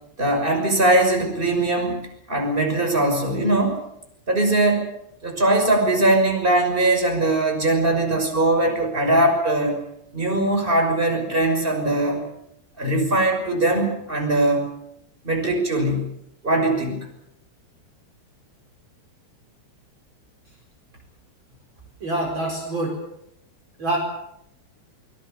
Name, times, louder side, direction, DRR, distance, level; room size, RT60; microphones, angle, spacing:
voice 1, 0.2-2.0 2.3-3.8 4.3-4.9 5.2-9.8 10.1-12.3 12.8-14.7 15.2-16.1 16.4-17.1, right 1 dB, 15° right, 4 dB, 6.1 m, -20 dB
voice 2, 22.0-23.0 23.8-24.0, right 2 dB, 40° right, 0 dB, 5.4 m, -25 dB
25.0 x 22.0 x 6.9 m, 0.78 s
omnidirectional pair, 3.3 m